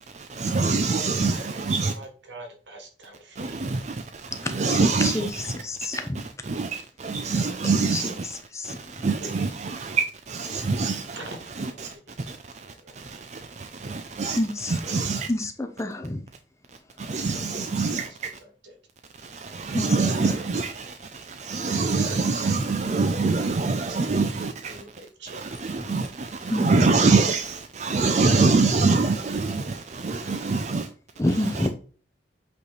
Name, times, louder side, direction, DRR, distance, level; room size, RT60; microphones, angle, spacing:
voice 1, 0.4-1.9 3.4-3.8 4.5-5.3 6.5-6.7 7.0-8.1 9.0-10.0 10.3-11.0 11.6-11.7 13.9-14.4 14.7-15.3 17.1-18.1 19.6-20.7 21.5-24.7 25.4-29.6 30.0-30.8 31.4-31.7, right 4 dB, 40° right, 0.4 m, -24 dB
voice 2, 1.3-3.7 9.2-9.4 11.1-13.4 17.3-18.8 23.8-25.8, right 2 dB, 80° right, 1.7 m, -45 dB
voice 3, 4.4-6.2 7.5-7.6 7.9-8.8 14.4-16.3 19.7-19.9 20.2-20.3 26.5-26.9 30.2-30.5 31.2-31.7, left 1 dB, 15° left, 0.7 m, -29 dB
8.1 x 3.2 x 4.1 m
head